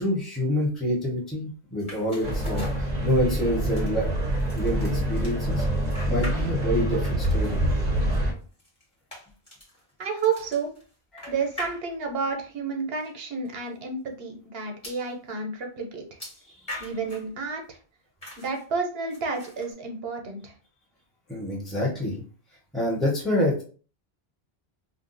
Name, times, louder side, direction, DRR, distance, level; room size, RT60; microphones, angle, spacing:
voice 1, 0.0-2.7 3.0-4.1 4.5-5.6 6.1-7.6 11.1-11.3 21.3-22.2 22.7-23.6, left 1 dB, ahead, -4 dB, 0.9 m, -27 dB
sound 1, 1.8-3.4 3.8-6.8 7.0-12.3 13.0-13.1 13.4-13.5 14.8-15.1 16.2-17.3 18.2-18.6 19.1-19.7, left 1 dB, 30° left, 1.3 m, -43 dB
sound 2, 2.2-8.3, right 1 dB, 45° right, 0.8 m, -26 dB
voice 2, 10.0-10.7 11.3-16.0 16.8-17.8 18.4-20.5, right 5 dB, 70° right, 3 dB, 1.0 m, -30 dB
2.5 x 2.3 x 3.9 m, 0.39 s
omnidirectional pair, 1.1 m